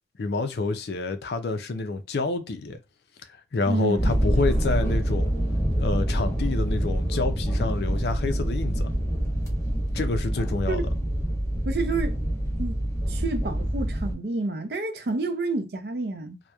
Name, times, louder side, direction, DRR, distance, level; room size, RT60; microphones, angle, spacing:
voice 1, 0.2-2.8 3.5-5.3 5.8-8.9 9.9-10.8, left 3 dB, 65° left, 0.4 m, -28 dB
voice 2, 3.7-4.1 10.7-10.8 11.7-12.2 12.6-12.8 13.1-16.4, right 3 dB, 60° right, 0.5 m, -29 dB
sound 1, 4.0-14.1, right 1 dB, 15° left, 0.7 m, -26 dB
2.8 x 2.1 x 2.2 m
head